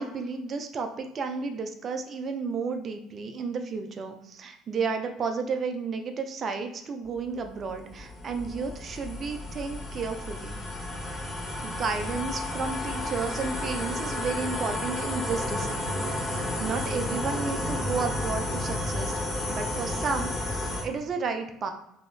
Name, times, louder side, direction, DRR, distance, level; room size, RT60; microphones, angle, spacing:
voice 1, 0.0-10.6 11.1-11.2 11.6-19.1 19.5-20.6 20.8-21.7, right 4 dB, 40° right, 5 dB, 0.3 m, -32 dB
sound 1, 7.3-20.8, left 1 dB, 35° left, 1.2 m, -32 dB
3.0 x 2.7 x 2.2 m, 0.83 s
figure-of-eight pair, 55°, 0 cm